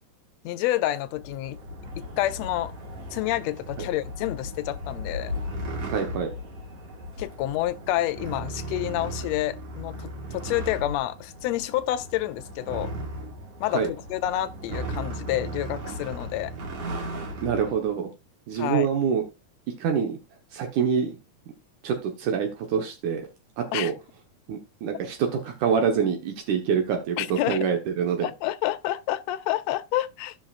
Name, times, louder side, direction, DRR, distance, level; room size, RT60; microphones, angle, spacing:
voice 1, 0.4-1.6 2.0-2.7 3.1-5.3 7.2-12.9 13.6-16.5 18.6-18.9 23.7-23.9 27.2-27.7 28.2-30.4, left 14 dB, 75° left, 1.6 m, -28 dB
sound 1, 1.1-17.9, equal, 55° right, 2.5 m, -36 dB
voice 2, 5.9-6.3 13.7-13.9 17.4-18.1 18.5-19.2 19.8-20.2 20.5-21.2 21.8-23.2 23.6-23.9 24.5-28.3, right 7 dB, 80° right, 2.6 m, -26 dB
15.5 x 6.1 x 2.4 m
omnidirectional pair, 3.5 m